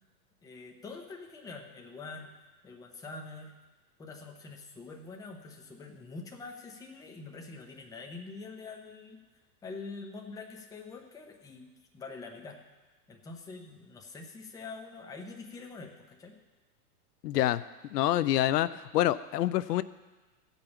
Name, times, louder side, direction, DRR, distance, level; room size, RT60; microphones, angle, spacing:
voice 1, 0.4-2.3 2.6-3.5 4.0-9.2 9.6-11.7 11.9-12.6 13.1-16.4, left 3 dB, 10° left, 2 dB, 0.7 m, -45 dB
voice 2, 17.2-17.6 17.9-19.8, left 13 dB, 80° left, 16 dB, 0.6 m, -27 dB
14.5 x 5.4 x 7.1 m, 1.2 s
hypercardioid pair, 145°, 48 cm